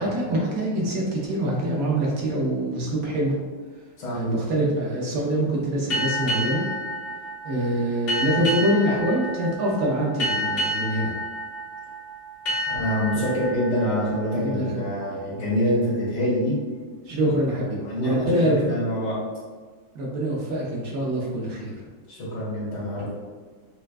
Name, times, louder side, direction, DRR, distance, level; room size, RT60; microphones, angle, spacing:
voice 1, 0.0-3.3 4.1-6.7 7.4-11.1 13.1-13.2 14.4-14.8 15.1-15.2 17.0-18.8 19.9-21.7, right 1 dB, 65° right, -3 dB, 0.9 m, -25 dB
sound 1, 5.9-15.2, equal, 45° left, 1.1 m, -30 dB
voice 2, 12.7-16.6 17.8-19.2 22.1-23.1, equal, 65° left, -8 dB, 2.0 m, -26 dB
5.5 x 2.2 x 2.4 m, 1.5 s
omnidirectional pair, 2.1 m